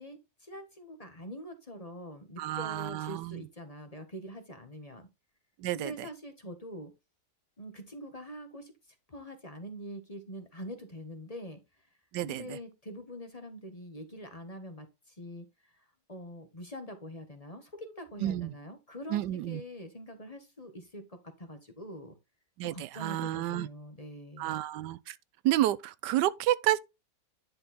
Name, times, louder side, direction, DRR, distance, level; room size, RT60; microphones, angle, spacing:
voice 1, 0.0-5.1 5.7-6.9 7.6-8.7 9.1-11.6 12.2-15.4 15.7-22.1 22.6-24.6, equal, 25° left, 1.3 m, -44 dB
voice 2, 2.4-3.5 5.6-6.1 12.1-12.6 18.2-18.5 19.1-19.6 22.6-23.7 24.4-25.2 25.4-26.8, right 14 dB, 90° right, 1.2 m, -30 dB
10.5 x 4.2 x 4.2 m
omnidirectional pair, 1.8 m